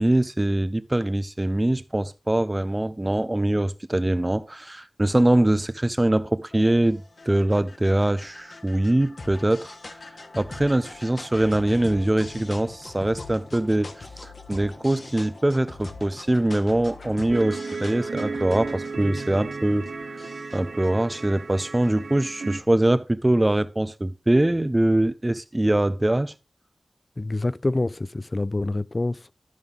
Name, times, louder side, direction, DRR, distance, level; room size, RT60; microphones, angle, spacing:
voice 1, 0.0-9.8 10.4-13.9 14.2-19.9 20.5-26.3, right 1 dB, 20° right, 0.6 m, -23 dB
sound 1, 6.5-22.0, left 3 dB, 60° left, 1.2 m, -43 dB
sound 2, 17.3-22.6, right 4 dB, 90° right, 0.7 m, -34 dB
voice 2, 27.2-29.3, left 2 dB, 35° left, 0.3 m, -26 dB
12.5 x 5.5 x 3.4 m
wide cardioid pair, 75°, 0 cm